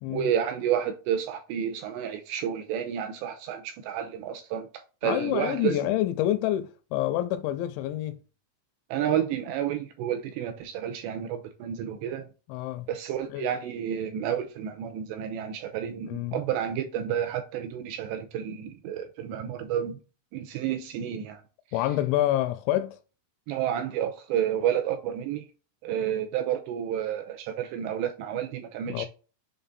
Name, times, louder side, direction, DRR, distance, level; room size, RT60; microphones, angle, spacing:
voice 1, 0.1-4.7 5.0-5.8 8.9-12.3 12.9-20.0 20.3-21.4 23.5-25.5 25.8-29.1, right 9 dB, 80° right, 2.5 m, -30 dB
voice 2, 5.0-8.2 12.5-12.9 13.3-13.5 16.0-16.4 21.7-23.0 28.9-29.1, left 13 dB, 85° left, 2.7 m, -27 dB
6.9 x 3.7 x 4.1 m
omnidirectional pair, 5.6 m